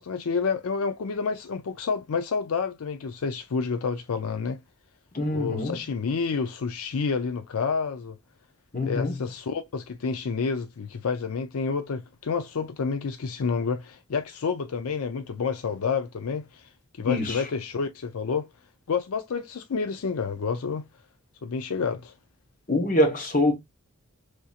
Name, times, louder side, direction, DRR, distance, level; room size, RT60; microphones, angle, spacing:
voice 1, 0.0-4.6 5.3-8.2 8.8-18.5 18.9-20.8 21.4-22.1, left 5 dB, 85° left, 0.5 m, -29 dB
voice 2, 5.1-5.8 8.7-9.1 17.0-17.4 22.7-23.5, left 1 dB, 35° left, 1.3 m, -24 dB
4.9 x 2.8 x 2.4 m
head